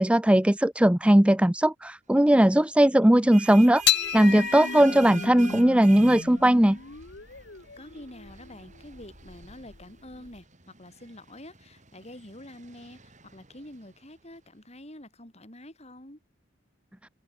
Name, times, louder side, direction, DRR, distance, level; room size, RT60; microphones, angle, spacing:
voice 1, 0.0-3.8 4.1-6.8, right 1 dB, 5° right, 0.5 m, -19 dB
sound 1, 3.1-14.4, right 5 dB, 35° right, 7.7 m, -46 dB
sound 2, 3.8-10.4, left 9 dB, 55° left, 1.7 m, -32 dB
voice 2, 7.8-16.2, left 1 dB, 30° left, 6.0 m, -47 dB
head